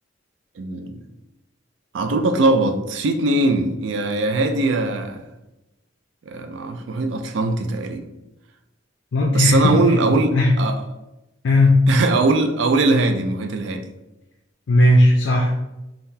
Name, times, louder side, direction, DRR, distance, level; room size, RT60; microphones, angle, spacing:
voice 1, 0.6-1.0 1.9-5.2 6.3-8.1 9.3-10.8 11.9-13.9, right 2 dB, 70° right, 6 dB, 0.4 m, -21 dB
voice 2, 9.1-9.8 10.3-10.5 11.4-11.8 14.7-15.5, left 1 dB, 70° left, 0 dB, 0.4 m, -16 dB
3.7 x 2.3 x 2.7 m, 0.97 s
head